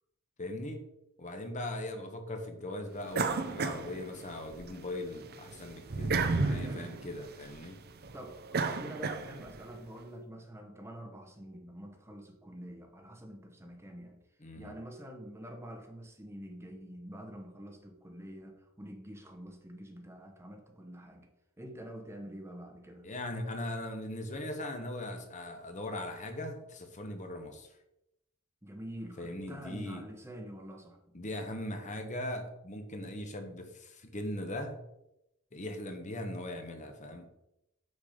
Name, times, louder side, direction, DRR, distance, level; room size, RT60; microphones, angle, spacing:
voice 1, 0.4-0.8 1.2-7.8 14.4-14.8 23.0-27.7 29.2-30.0 31.1-34.8 35.5-37.3, left 1 dB, 35° left, 5 dB, 1.0 m, -39 dB
sound 1, 3.1-4.7 5.1-9.7, right 4 dB, 45° right, 0.7 m, -33 dB
voice 2, 6.5-6.9 8.1-8.4 8.6-14.2 14.6-21.3 21.6-23.1 28.6-31.0, right 1 dB, 10° right, 4 dB, 1.0 m, -46 dB
6.9 x 6.5 x 5.0 m, 0.86 s
head